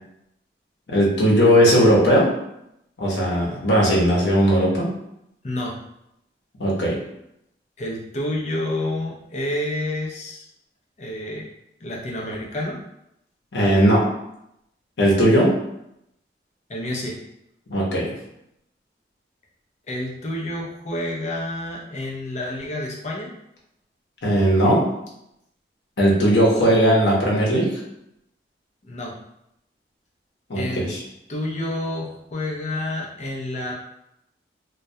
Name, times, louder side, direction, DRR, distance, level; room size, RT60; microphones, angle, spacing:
voice 1, 0.9-2.3 3.0-4.9 6.6-7.0 13.5-14.0 15.0-15.5 17.7-18.1 24.2-24.8 26.0-27.8 30.5-31.0, equal, 80° left, -3 dB, 0.7 m, -18 dB
voice 2, 5.4-5.8 7.8-10.5 11.0-11.5 11.8-12.8 16.7-17.2 19.9-23.3 28.8-29.2 30.5-30.9 31.3-33.7, left 1 dB, 40° left, -2 dB, 0.5 m, -29 dB
2.2 x 2.1 x 2.6 m, 0.81 s
head